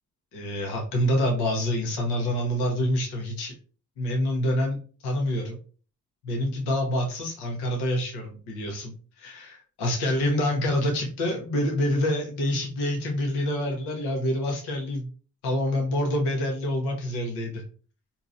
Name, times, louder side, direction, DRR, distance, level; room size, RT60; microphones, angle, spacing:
voice 1, 0.3-3.5 4.0-4.8 5.0-5.6 6.2-15.1 15.4-17.6, left 1 dB, 85° left, 1 dB, 0.8 m, -27 dB
3.8 x 2.7 x 2.5 m, 0.39 s
hypercardioid pair, 40°, 38 cm